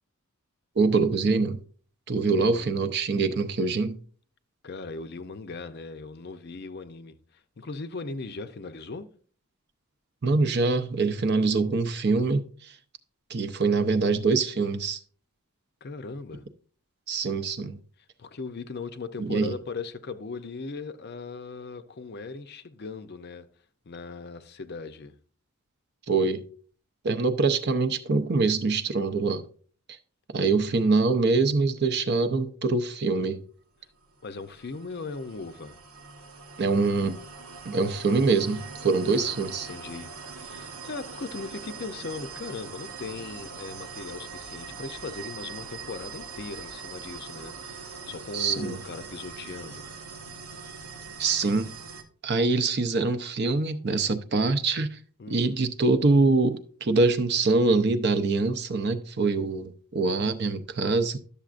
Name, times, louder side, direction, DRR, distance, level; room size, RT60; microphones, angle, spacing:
voice 1, 0.8-1.6 2.1-4.0 10.2-12.7 13.3-15.0 17.1-17.8 19.2-19.5 26.1-26.5 27.0-29.4 30.3-33.4 36.6-37.2 37.6-39.7 48.3-48.8 51.2-51.7 52.2-55.0 55.3-61.2, right 3 dB, 50° right, 0.6 m, -24 dB
voice 2, 2.4-2.7 4.6-9.1 15.8-16.5 18.2-23.5 23.9-25.2 34.2-35.8 39.1-40.1 40.4-49.9 55.2-55.6, left 4 dB, 45° left, 0.5 m, -38 dB
sound 1, 34.0-52.0, right 5 dB, 90° right, 0.9 m, -42 dB
11.5 x 6.9 x 2.5 m
head